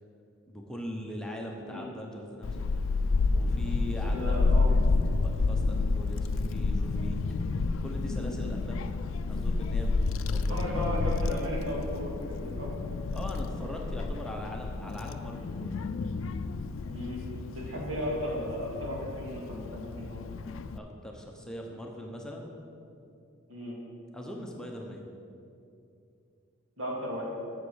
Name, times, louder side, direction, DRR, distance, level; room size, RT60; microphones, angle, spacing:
voice 1, 0.5-2.7 3.3-4.4 5.2-7.4 7.8-10.9 13.1-15.7 20.7-22.5 24.1-25.0, equal, 5° left, 0 dB, 0.8 m, -41 dB
Child speech kid speaking / Wind, 2.4-20.8, left 3 dB, 70° left, 0.4 m, -30 dB
voice 2, 4.0-4.7 10.2-12.7 16.9-17.2 17.5-20.2 23.5-23.7 26.8-27.3, equal, 80° right, -4 dB, 2.7 m, -35 dB
8.1 x 7.2 x 6.4 m, 2.5 s
head